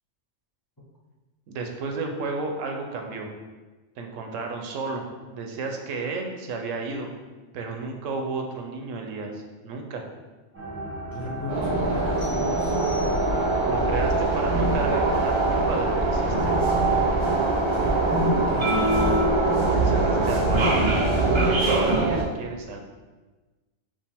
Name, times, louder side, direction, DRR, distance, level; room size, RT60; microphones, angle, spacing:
voice 1, 1.5-3.3 4.0-5.1 5.3-7.1 7.5-10.1 13.7-16.6 19.7-20.8 21.1-22.8, right 3 dB, 80° right, 3 dB, 1.0 m, -32 dB
sound 1, 10.5-20.9, right 1 dB, 10° right, 0.9 m, -36 dB
voice 2, 11.1-12.8 18.3-18.8, left 1 dB, 20° left, -5 dB, 0.7 m, -34 dB
sound 2, 11.5-22.2, right 2 dB, 45° right, 0.3 m, -22 dB
sound 3, 12.2-13.7, left 4 dB, 75° left, 1.9 m, -45 dB
5.2 x 2.5 x 3.4 m, 1.2 s
omnidirectional pair, 1.3 m